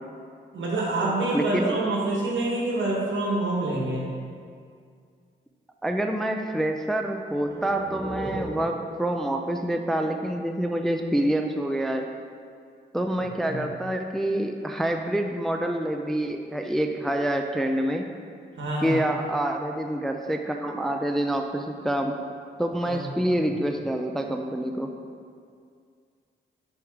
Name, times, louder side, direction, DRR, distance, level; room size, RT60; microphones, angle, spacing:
voice 1, 0.5-4.1 13.4-13.6 18.6-19.1 22.8-23.0, right 2 dB, 75° right, -4 dB, 1.4 m, -26 dB
voice 2, 1.3-1.8 5.8-12.1 12.9-18.1 18.8-22.2 22.6-24.9, right 1 dB, ahead, 4 dB, 0.3 m, -27 dB
sound 1, 7.4-10.9, right 1 dB, 15° right, 1.0 m, -39 dB
6.2 x 3.5 x 4.6 m, 2.2 s
cardioid pair, 75°, 20 cm